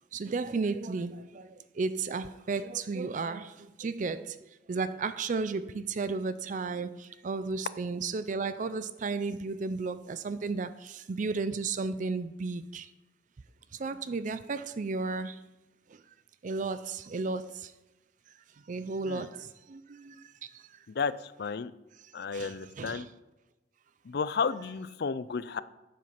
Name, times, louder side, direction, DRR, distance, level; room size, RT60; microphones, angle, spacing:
voice 1, 0.1-1.4 1.8-3.5 3.8-4.3 4.7-6.9 7.2-10.7 11.1-12.9 13.8-15.3 16.4-17.5 18.7-19.3 19.7-19.8 20.1-20.2 22.3-22.5 22.8-23.0, right 4 dB, 45° right, 0.4 m, -33 dB
voice 2, 20.9-21.7 22.1-23.1 24.0-25.6, left 5 dB, 60° left, 0.5 m, -32 dB
9.3 x 7.6 x 5.9 m
head